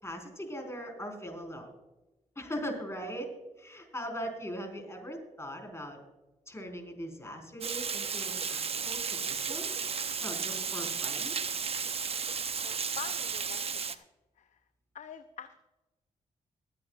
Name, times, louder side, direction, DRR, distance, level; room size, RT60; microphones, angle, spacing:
voice 1, 0.0-1.7 2.3-3.3 3.6-6.0 6.5-9.7 10.2-11.4, equal, 20° left, 2 dB, 4.7 m, -40 dB
Water, 7.6-14.0, right 6 dB, 45° right, 0.8 m, -34 dB
voice 2, 12.6-14.0 14.4-14.6 14.9-15.6, left 8 dB, 65° left, 9 dB, 0.7 m, -45 dB
22.5 x 9.2 x 2.5 m, 1.1 s
supercardioid pair, 50°, 14 cm